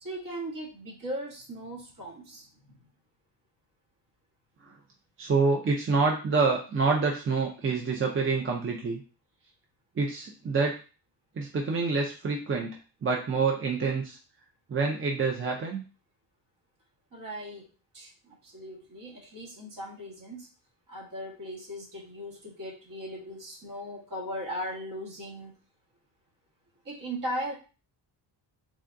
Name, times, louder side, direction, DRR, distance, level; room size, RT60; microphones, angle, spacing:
voice 1, 0.0-2.8 17.1-17.7 17.9-20.5 20.9-25.6 26.8-27.5, equal, 50° right, -2 dB, 1.3 m, -38 dB
voice 2, 5.2-9.0 10.0-10.7 11.4-12.8 13.0-14.2 14.7-15.8, right 4 dB, 30° right, 0 dB, 0.5 m, -27 dB
3.5 x 3.5 x 2.5 m, 0.35 s
wide cardioid pair, 130°, 42 cm